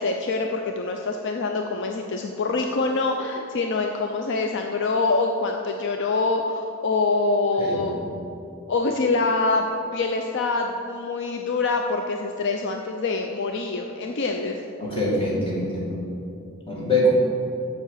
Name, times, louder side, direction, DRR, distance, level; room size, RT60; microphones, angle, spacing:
voice 1, 0.0-8.0 8.7-9.7 9.9-14.6, left 3 dB, 60° left, 4 dB, 0.5 m, -25 dB
voice 2, 7.6-8.0 14.8-15.9 16.7-17.1, equal, 25° left, -5 dB, 2.2 m, -24 dB
7.3 x 6.9 x 6.4 m, 2.7 s
head